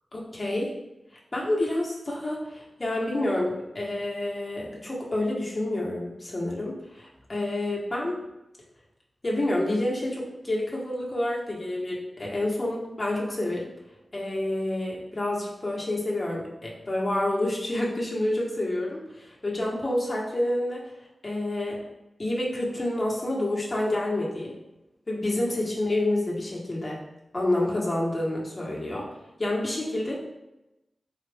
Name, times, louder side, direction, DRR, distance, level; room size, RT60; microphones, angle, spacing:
voice 1, 0.1-0.7 1.3-8.2 9.2-13.7 14.1-20.8 21.2-21.8 22.2-24.5 25.1-27.0 27.3-29.1 29.4-30.2, left 1 dB, 35° left, -4 dB, 1.1 m, -28 dB
3.9 x 2.5 x 3.3 m, 0.95 s
wide cardioid pair, 70°, 0 cm